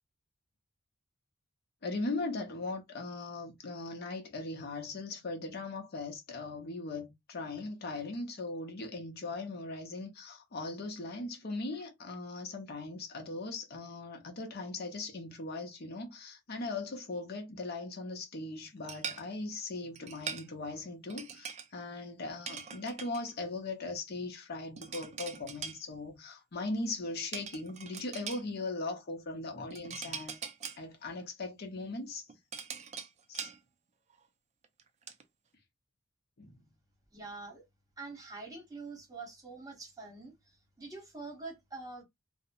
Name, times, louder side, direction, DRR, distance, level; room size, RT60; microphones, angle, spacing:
voice 1, 1.8-30.4 30.8-32.3 33.3-33.5 36.4-36.6, left 2 dB, 50° left, 0.7 m, -39 dB
sound 1, 18.9-19.3 20.0-20.5 21.1-21.7 22.5-23.3 24.8-25.8 27.3-28.4 29.7-30.8 32.1-33.6 34.1-34.2 34.6-35.2, right 6 dB, 35° right, 0.4 m, -42 dB
voice 2, 37.1-37.6 38.0-42.0, right 3 dB, 20° right, 1.0 m, -45 dB
2.6 x 2.0 x 2.5 m
head